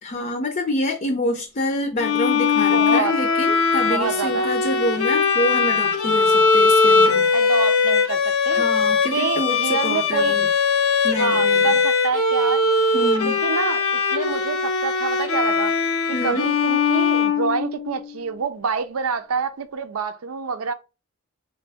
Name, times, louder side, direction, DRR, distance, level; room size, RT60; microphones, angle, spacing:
voice 1, 0.0-7.3 8.5-10.5 11.0-11.8 12.9-13.4 16.1-16.5, left 1 dB, 40° left, 0.6 m, -27 dB
Bowed string instrument, 2.0-18.0, left 4 dB, 90° left, 0.9 m, -20 dB
voice 2, 2.7-3.2 3.9-4.5 7.3-8.6 9.1-10.3 11.2-12.7 13.2-15.7 16.2-20.7, right 5 dB, 90° right, 0.5 m, -27 dB
3.9 x 3.4 x 3.4 m
head